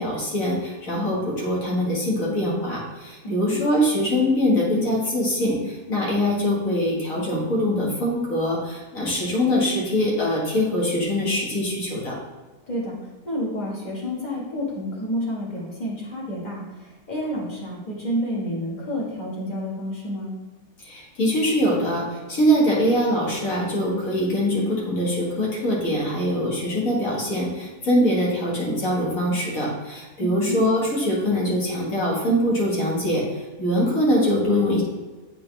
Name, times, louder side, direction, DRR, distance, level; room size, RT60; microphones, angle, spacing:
voice 1, 0.0-12.2 20.8-34.8, equal, 55° left, -4 dB, 2.0 m, -23 dB
voice 2, 3.2-3.6 12.7-20.3 30.2-30.6, equal, 25° left, -4 dB, 1.7 m, -29 dB
8.5 x 4.1 x 3.3 m, 1.2 s
omnidirectional pair, 1.7 m